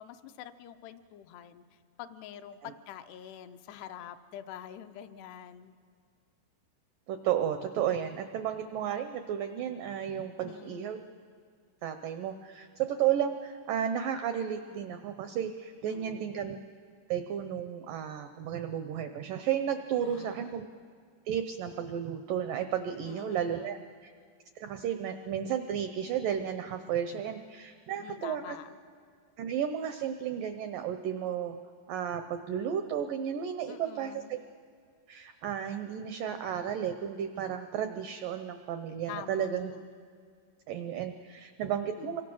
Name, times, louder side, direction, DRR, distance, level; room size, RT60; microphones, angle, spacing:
voice 1, 0.0-1.6 2.0-5.8 10.4-10.9 15.9-16.3 20.0-20.5 23.0-23.9 28.0-28.8 33.7-34.4 39.1-39.9 42.0-42.2, left 10 dB, 80° left, 8 dB, 2.7 m, -46 dB
voice 2, 7.1-11.0 11.8-16.6 17.1-20.7 21.3-23.8 24.0-24.1 24.6-28.6 29.4-31.6 31.9-34.4 35.1-39.8 40.7-42.2, right 9 dB, 85° right, 8 dB, 1.9 m, -33 dB
27.5 x 23.5 x 6.2 m, 2.1 s
omnidirectional pair, 4.9 m